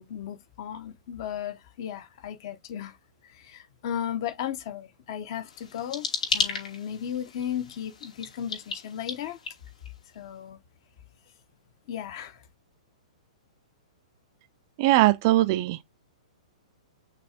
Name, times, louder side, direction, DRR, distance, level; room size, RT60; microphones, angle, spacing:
voice 1, 0.0-3.0 3.2-6.1 6.3-9.4 10.1-10.6 11.9-12.4, left 9 dB, 35° left, 1.1 m, -35 dB
sound 1, 5.5-10.2, left 5 dB, 80° left, 3.0 m, -34 dB
voice 2, 14.8-15.8, right 16 dB, 30° right, 0.5 m, -21 dB
6.0 x 3.2 x 5.1 m
hypercardioid pair, 175°, 4 cm